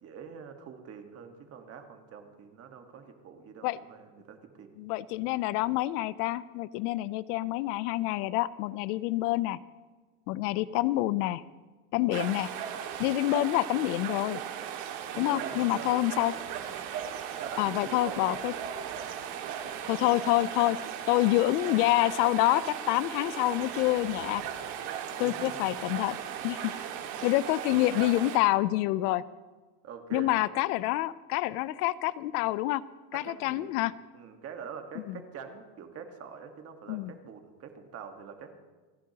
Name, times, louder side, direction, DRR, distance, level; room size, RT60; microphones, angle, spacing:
voice 1, 0.0-4.7 15.1-16.4 17.4-18.4 25.2-25.8 29.8-30.3 33.1-33.8 34.1-38.5, right 6 dB, 30° right, 5 dB, 1.4 m, -45 dB
voice 2, 4.8-9.6 10.3-11.4 11.9-12.5 13.0-14.4 15.2-16.3 17.6-18.5 19.9-20.8 21.1-24.4 25.2-26.2 26.4-26.7 27.2-29.2 30.1-32.8 33.1-33.9 35.1-35.2 36.9-37.1, left 16 dB, 75° left, 18 dB, 0.6 m, -27 dB
sound 1, 12.1-28.4, right 9 dB, 60° right, 2.0 m, -37 dB
27.5 x 11.0 x 2.9 m, 1.3 s
cardioid pair, 160°, 46 cm